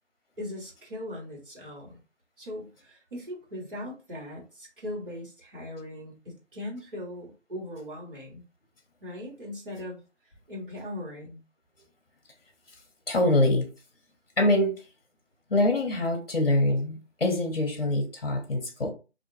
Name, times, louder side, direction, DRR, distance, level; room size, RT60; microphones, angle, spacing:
voice 1, 0.4-2.0 2.4-8.4 9.0-10.0 10.5-11.4, left 1 dB, 45° right, 1.4 m, -39 dB
voice 2, 13.1-13.7 14.4-14.8 15.5-18.9, left 1 dB, 50° left, 0.9 m, -24 dB
2.7 x 2.4 x 2.7 m
figure-of-eight pair, 155°, 36 cm